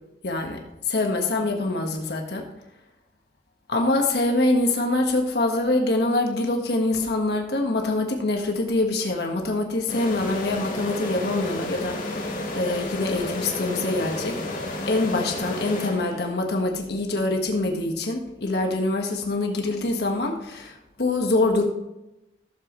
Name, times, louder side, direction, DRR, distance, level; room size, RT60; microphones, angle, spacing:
voice 1, 0.2-0.6 0.9-2.4 3.7-14.4 14.9-21.6, left 2 dB, 70° left, 2 dB, 1.4 m, -25 dB
sound 1, 9.9-16.5, left 1 dB, 50° left, 1.7 m, -31 dB
14.5 x 7.3 x 3.1 m, 0.94 s
head